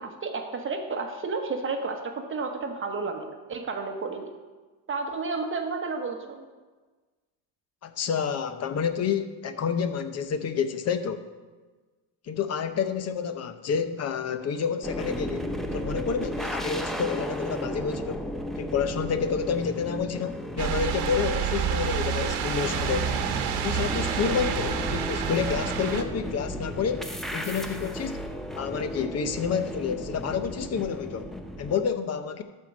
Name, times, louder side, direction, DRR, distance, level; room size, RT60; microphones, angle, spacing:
voice 1, 0.0-4.3 4.9-6.4, right 4 dB, 25° right, 4 dB, 1.1 m, -32 dB
voice 2, 7.8-11.3 12.3-18.2 18.6-23.3 23.6-28.2 28.5-31.3 31.6-32.4, left 7 dB, 35° left, 9 dB, 0.7 m, -29 dB
sound 1, 14.8-31.8, equal, ahead, 0.4 m, -34 dB
sound 2, 20.6-26.0, right 8 dB, 55° right, 1.2 m, -29 dB
12.5 x 4.6 x 6.2 m, 1.3 s
cardioid pair, 125°, 47 cm